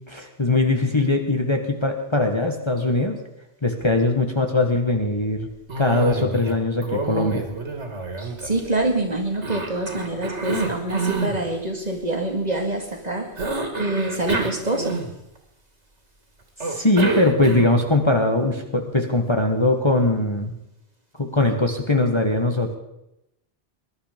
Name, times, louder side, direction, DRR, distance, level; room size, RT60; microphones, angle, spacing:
voice 1, 0.1-3.2 3.6-5.5 5.8-7.4 16.6-20.5 21.2-22.7, left 2 dB, 25° left, 3 dB, 1.5 m, -21 dB
Cough, 5.7-6.6 6.8-8.9 9.4-11.4 13.4-15.4 16.6-17.9, right 3 dB, 85° right, 2.4 m, -28 dB
voice 2, 8.2-13.4 13.8-15.0, right 2 dB, 35° right, 3 dB, 2.2 m, -26 dB
21.0 x 11.5 x 5.1 m, 0.85 s
omnidirectional pair, 1.1 m